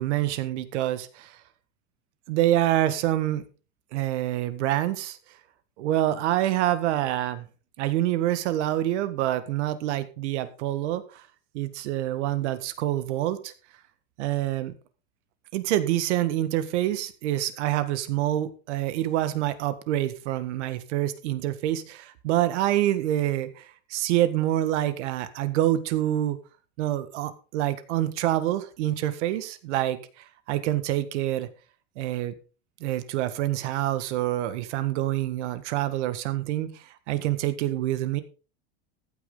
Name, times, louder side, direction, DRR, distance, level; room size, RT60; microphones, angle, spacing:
voice 1, 0.0-1.4 2.3-3.4 3.9-5.2 5.8-7.5 7.8-11.2 11.5-13.5 14.2-14.7 15.5-26.4 26.8-31.5 32.0-32.3 32.8-38.2, right 13 dB, 75° right, 12 dB, 1.7 m, -26 dB
15.0 x 8.7 x 3.9 m, 0.35 s
supercardioid pair, 160°, 35 cm